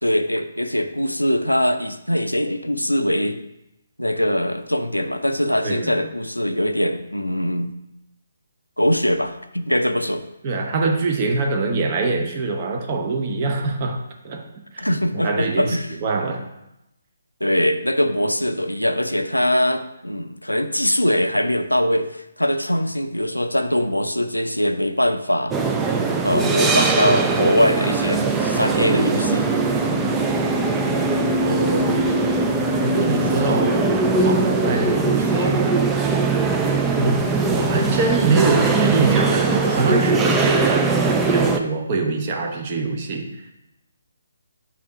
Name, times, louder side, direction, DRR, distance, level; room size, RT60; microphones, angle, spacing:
voice 1, 0.0-3.4 4.0-7.7 8.8-10.2 14.8-15.9 17.4-25.6 26.2-29.5, equal, 90° left, 8 dB, 0.5 m, -22 dB
voice 2, 5.6-6.1 10.4-14.4 14.7-16.4 31.4-32.2 32.8-35.8 37.0-43.3, right 3 dB, 30° right, 3 dB, 0.8 m, -24 dB
sound 1, 25.5-41.6, right 3 dB, 10° right, 0.4 m, -20 dB
8.1 x 2.8 x 4.6 m, 0.87 s
figure-of-eight pair, 140°, 0 cm